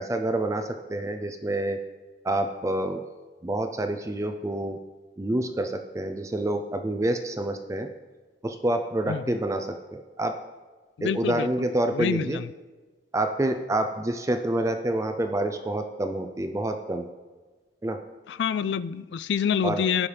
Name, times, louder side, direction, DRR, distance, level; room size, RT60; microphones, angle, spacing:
voice 1, 0.0-1.8 2.2-3.0 3.4-4.8 5.2-7.9 8.4-10.4 11.0-12.4 13.1-17.1 17.8-18.0 19.6-19.8, right 1 dB, 15° right, 0.4 m, -27 dB
voice 2, 9.1-9.4 11.0-11.7 11.9-12.5 18.3-20.1, left 7 dB, 75° left, 0.3 m, -27 dB
16.5 x 5.6 x 3.4 m
head